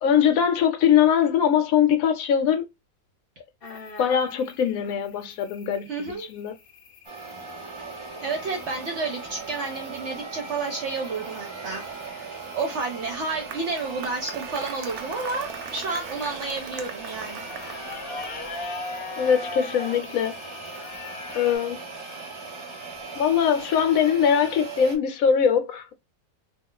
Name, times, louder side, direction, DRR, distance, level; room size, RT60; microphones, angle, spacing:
voice 1, 0.0-2.6 4.0-5.9 6.2-6.5 19.2-20.4 21.3-21.8 23.1-25.9, left 8 dB, 75° left, 1.0 m, -21 dB
sound 1, 3.6-21.6, left 3 dB, 50° left, 0.7 m, -43 dB
voice 2, 5.9-6.3 8.2-12.3 12.6-17.5, right 3 dB, 60° right, 0.9 m, -31 dB
sound 2, 7.1-25.0, right 3 dB, 30° right, 0.6 m, -39 dB
Applause, 13.1-18.5, right 8 dB, 90° right, 1.1 m, -41 dB
2.4 x 2.4 x 3.7 m
omnidirectional pair, 1.5 m